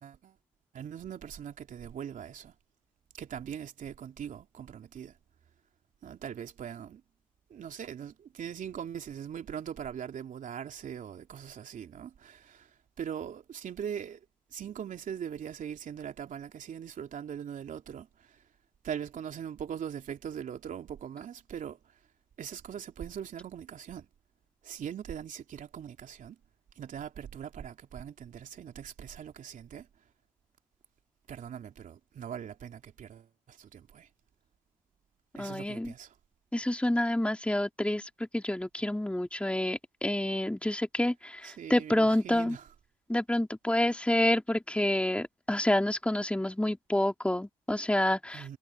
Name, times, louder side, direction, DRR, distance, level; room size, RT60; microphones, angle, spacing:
voice 1, 0.0-0.4 0.7-2.5 3.1-5.1 6.0-7.0 7.5-14.2 14.5-18.4 18.8-21.9 22.4-24.1 24.6-26.4 26.8-29.9 31.3-34.1 35.3-36.1 41.4-42.6 48.3-48.6, right 8 dB, 65° right, 3.2 m, -41 dB
voice 2, 35.4-35.9 36.5-42.6 43.1-48.6, left 1 dB, 10° left, 3.0 m, -28 dB
supercardioid pair, 50°, 14 cm